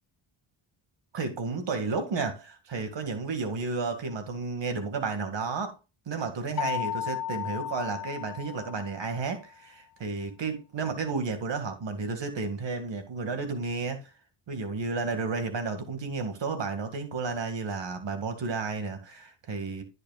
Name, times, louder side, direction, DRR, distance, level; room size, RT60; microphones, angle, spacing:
voice 1, 1.1-5.8 6.1-14.0 14.5-19.8, right 4 dB, 60° right, 2.2 m, -32 dB
sound 1, 6.6-9.3, left 10 dB, 45° left, 1.5 m, -34 dB
16.5 x 6.7 x 2.4 m
cardioid pair, 80°, 50 cm